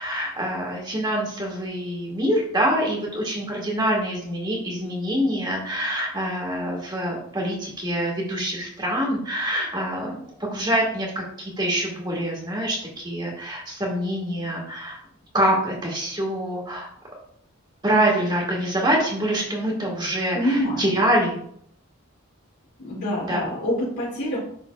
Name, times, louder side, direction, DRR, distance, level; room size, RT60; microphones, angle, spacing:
voice 1, 0.0-15.0 15.3-16.9 17.8-21.4 23.3-23.5, right 1 dB, 20° right, -2 dB, 1.7 m, -25 dB
voice 2, 20.3-20.9 22.8-24.4, equal, 85° left, -9 dB, 2.6 m, -26 dB
11.0 x 3.8 x 2.3 m, 0.65 s
head